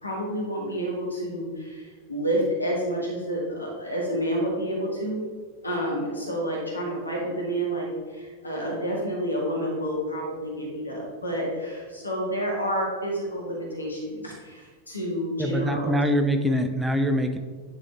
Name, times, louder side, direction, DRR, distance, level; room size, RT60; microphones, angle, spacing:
voice 1, 0.0-5.2 5.6-16.0, equal, 80° left, -2 dB, 1.9 m, -29 dB
voice 2, 15.4-17.4, equal, 10° right, 7 dB, 0.6 m, -24 dB
9.6 x 3.8 x 3.7 m, 1.6 s
figure-of-eight pair, 90°, 0 cm